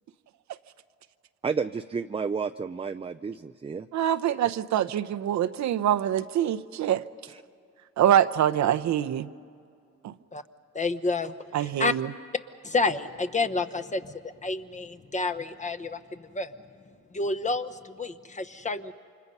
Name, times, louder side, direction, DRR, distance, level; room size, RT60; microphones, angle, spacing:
voice 1, 1.4-3.9 7.3-7.4, right 5 dB, 20° right, 8 dB, 0.5 m, -31 dB
voice 2, 3.9-7.0 8.0-9.3 10.0-10.1 11.5-12.1, right 10 dB, 70° right, 9 dB, 0.8 m, -24 dB
voice 3, 10.7-11.3 11.6-11.9 12.6-16.0 16.3-16.5 17.1-18.9, left 3 dB, 25° left, 10 dB, 1.0 m, -29 dB
29.5 x 26.0 x 5.5 m, 2.4 s
cardioid pair, 90°, 30 cm